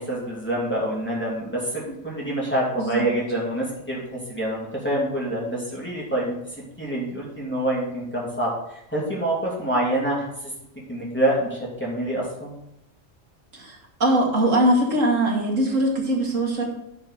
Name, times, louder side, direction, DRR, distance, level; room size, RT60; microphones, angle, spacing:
voice 1, 0.0-6.3 6.8-10.3 10.9-12.5, right 1 dB, 10° left, -5 dB, 2.9 m, -26 dB
voice 2, 13.5-16.6, right 1 dB, 85° right, -1 dB, 2.6 m, -21 dB
10.5 x 5.3 x 5.8 m, 0.83 s
omnidirectional pair, 1.3 m